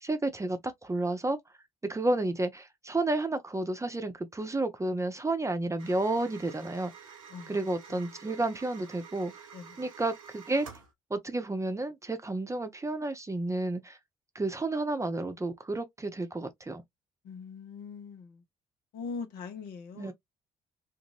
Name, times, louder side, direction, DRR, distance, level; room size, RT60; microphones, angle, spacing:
voice 1, 0.0-1.4 1.8-6.9 7.5-9.5 9.8-10.7 11.1-14.0 14.3-16.8 20.0-20.1, right 2 dB, 20° right, 0.7 m, -31 dB
sound 1, 5.8-10.9, right 6 dB, 90° right, 0.5 m, -50 dB
voice 2, 9.5-9.8 17.2-18.4 18.9-20.1, left 5 dB, 65° left, 0.9 m, -41 dB
2.6 x 2.5 x 3.1 m
hypercardioid pair, 45°, 17 cm